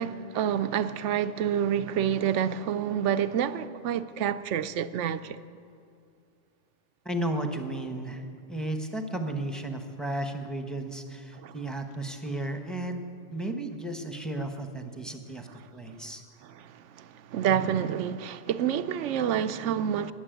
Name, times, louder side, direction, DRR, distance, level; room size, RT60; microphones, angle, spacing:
voice 1, 0.0-5.4 11.4-11.5 16.5-16.7 17.0-20.1, right 9 dB, 85° right, 0.9 m, -28 dB
voice 2, 7.0-13.0 13.3-15.5 15.7-16.2, right 1 dB, ahead, 1.0 m, -34 dB
18.0 x 7.4 x 9.1 m
omnidirectional pair, 1.2 m